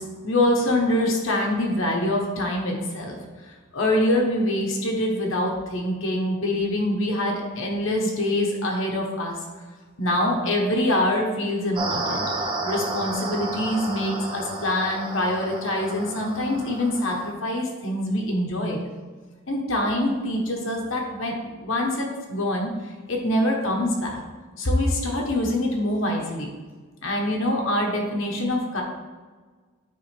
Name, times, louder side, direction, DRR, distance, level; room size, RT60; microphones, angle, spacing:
voice 1, 0.0-3.2 3.7-9.4 10.0-12.2 12.6-18.8 19.5-21.3 21.6-22.7 23.1-24.2 24.6-26.5 27.0-28.8, left 1 dB, 60° left, 0 dB, 1.1 m, -24 dB
sound 1, 11.8-17.3, right 2 dB, 25° right, 0.7 m, -31 dB
9.3 x 3.5 x 3.4 m, 1.4 s
head